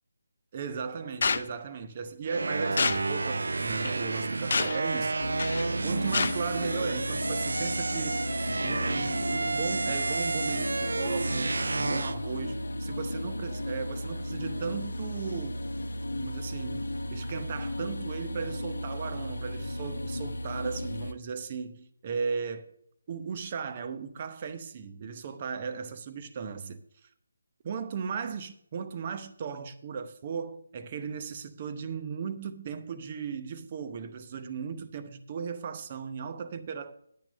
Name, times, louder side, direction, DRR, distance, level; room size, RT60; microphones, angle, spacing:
voice 1, 0.5-5.2 5.8-8.3 8.6-15.6 16.2-22.7 23.1-26.8 27.6-36.9, right 6 dB, 30° right, 0.8 m, -36 dB
sound 1, 1.2-1.4 2.8-3.0 3.8-3.9 4.5-4.8 5.4-5.7 6.1-6.3, left 4 dB, 50° left, 0.5 m, -27 dB
sound 2, 2.3-12.2, right 3 dB, 60° right, 0.3 m, -31 dB
sound 3, 5.2-21.1, left 1 dB, 65° left, 0.9 m, -35 dB
10.0 x 6.0 x 6.6 m
figure-of-eight pair, 150°, 0 cm